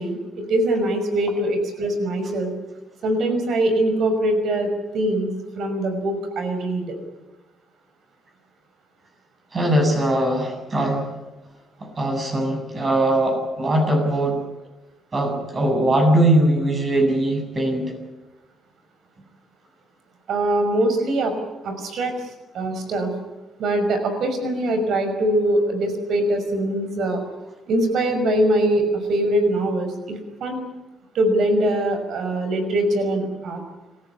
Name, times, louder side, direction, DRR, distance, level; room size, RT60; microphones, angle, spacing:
voice 1, 0.0-2.5 3.0-5.3 5.6-6.9 20.3-21.3 21.6-22.1 22.5-23.1 23.6-27.2 27.7-30.7 31.1-33.6, right 1 dB, 70° right, 7 dB, 5.7 m, -22 dB
voice 2, 9.5-11.1 11.8-14.4 15.1-17.9, right 1 dB, 35° right, 4 dB, 7.7 m, -20 dB
26.5 x 15.0 x 10.0 m, 1.1 s
cardioid pair, 90°, 0 cm